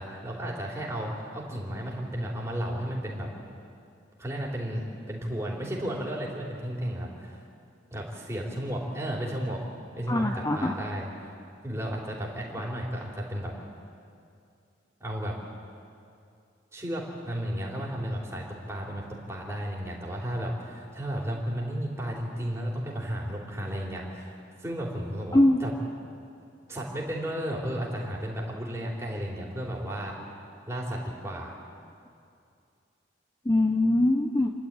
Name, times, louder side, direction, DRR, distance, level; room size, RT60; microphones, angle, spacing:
voice 1, 0.0-3.3 4.2-7.4 7.9-9.6 9.9-11.1 11.6-13.5 15.0-15.4 16.7-25.7 26.7-30.1 30.7-31.6, equal, 15° right, -3 dB, 3.4 m, -33 dB
voice 2, 10.1-10.8 25.3-25.6 33.5-34.5, left 1 dB, 20° left, 4 dB, 0.7 m, -22 dB
28.5 x 12.0 x 8.9 m, 2.5 s
head